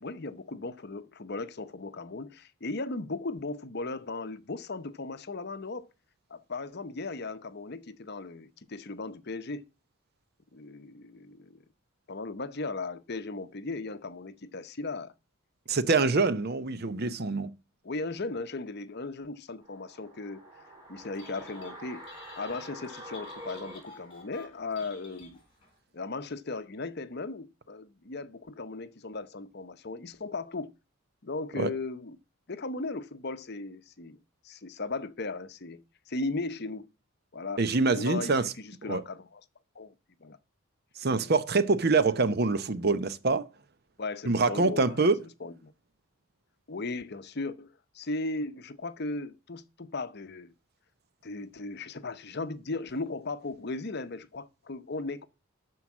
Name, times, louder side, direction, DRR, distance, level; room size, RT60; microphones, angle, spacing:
voice 1, 0.0-5.9 6.3-9.7 10.5-11.6 12.1-15.1 15.8-16.2 17.8-20.4 20.9-22.1 22.4-25.4 25.9-30.7 31.2-32.2 32.5-34.2 34.4-36.9 37.3-39.4 39.7-39.9 40.2-40.4 41.2-41.3 44.0-45.0 45.4-45.7 46.7-50.5 51.2-55.3, left 3 dB, 50° left, 0.8 m, -37 dB
voice 2, 15.7-17.5 31.6-31.7 37.6-38.5 38.9-39.0 41.0-43.5 44.3-45.2, right 3 dB, 45° right, 0.8 m, -25 dB
sound 1, 19.6-24.7 25.0-25.1, equal, 15° right, 3.8 m, -47 dB
Telephone, 21.0-21.7 22.0-25.7, left 3 dB, 25° left, 4.1 m, -52 dB
12.5 x 4.7 x 7.2 m
head